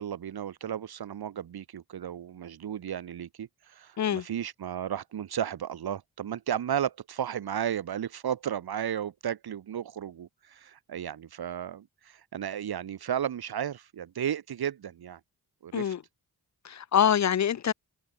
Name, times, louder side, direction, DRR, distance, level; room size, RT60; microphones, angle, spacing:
voice 1, 0.0-15.2 15.6-15.9, right 9 dB, 75° right, 1.2 m, -34 dB
voice 2, 16.6-17.7, left 9 dB, 45° left, 0.5 m, -25 dB
cardioid pair, 65°, 38 cm